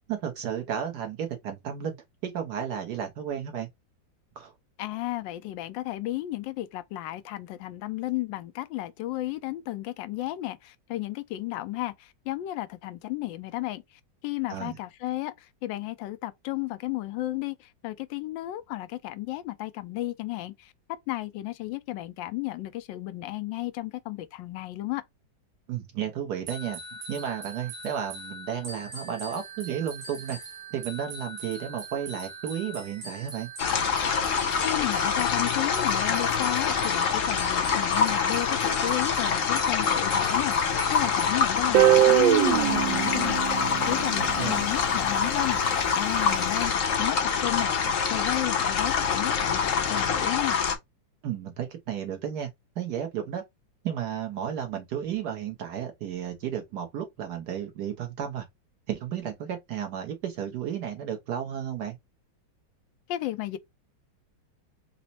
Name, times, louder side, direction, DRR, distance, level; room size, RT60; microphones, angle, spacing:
voice 1, 0.1-2.0 2.2-3.7 4.4-4.5 14.5-14.8 25.7-26.8 27.1-30.4 30.7-33.5 44.2-44.6 51.2-52.5 52.8-53.4 53.8-58.5 58.9-62.0, right 9 dB, 65° right, 1.2 m, -33 dB
voice 2, 4.8-13.8 14.2-15.3 15.6-20.7 21.1-25.0 34.6-50.6 63.1-63.6, left 16 dB, 80° left, 1.3 m, -33 dB
sound 1, 26.5-41.3, right 2 dB, 45° right, 1.1 m, -42 dB
sound 2, 33.6-50.8, left 6 dB, 60° left, 0.9 m, -25 dB
Guitar, 41.7-44.7, right 14 dB, 90° right, 1.3 m, -22 dB
4.1 x 2.1 x 4.0 m
omnidirectional pair, 2.1 m